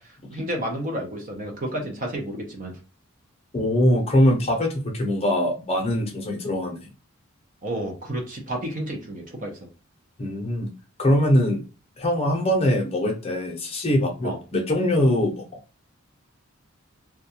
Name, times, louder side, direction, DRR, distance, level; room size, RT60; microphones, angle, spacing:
voice 1, 0.0-2.7 7.6-9.5 14.2-14.4, right 1 dB, 35° right, 2 dB, 0.5 m, -31 dB
voice 2, 3.5-6.9 10.2-10.7 11.0-11.6 12.0-15.4, left 1 dB, 30° left, 1 dB, 0.7 m, -22 dB
2.3 x 2.2 x 2.7 m, 0.33 s
head